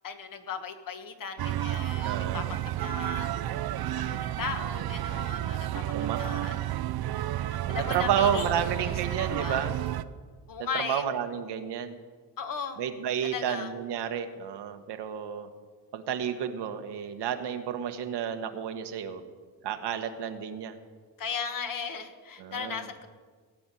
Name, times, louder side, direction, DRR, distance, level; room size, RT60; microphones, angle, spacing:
voice 1, 0.0-3.4 4.0-6.8 7.5-8.5 8.8-9.7 10.5-11.0 12.4-12.8 13.2-13.7 21.2-23.1, left 6 dB, 55° left, 7 dB, 1.6 m, -37 dB
sound 1, 1.4-10.0, right 13 dB, 65° right, 0.7 m, -31 dB
voice 2, 2.0-2.4 5.9-6.2 7.9-9.8 10.7-12.0 12.8-15.5 15.9-19.2 19.6-20.8 22.4-22.8, right 8 dB, 80° right, 7 dB, 1.4 m, -31 dB
18.0 x 6.1 x 9.8 m, 1.5 s
cardioid pair, 115°, 40 cm